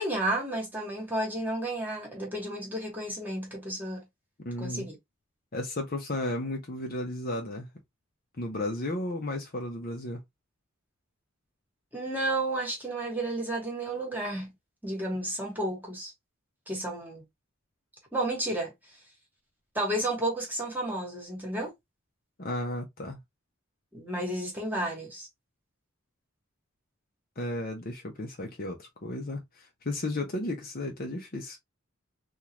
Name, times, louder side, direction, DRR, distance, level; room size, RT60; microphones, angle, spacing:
voice 1, 0.0-4.0 4.6-5.0 11.9-14.5 14.8-16.1 16.7-17.2 18.1-18.7 19.7-21.7 23.9-25.3, right 1 dB, 10° right, 1.5 m, -32 dB
voice 2, 4.4-4.9 5.5-7.7 8.4-10.2 22.4-23.2 27.4-31.6, left 1 dB, 45° left, 0.8 m, -34 dB
3.7 x 2.4 x 2.9 m
head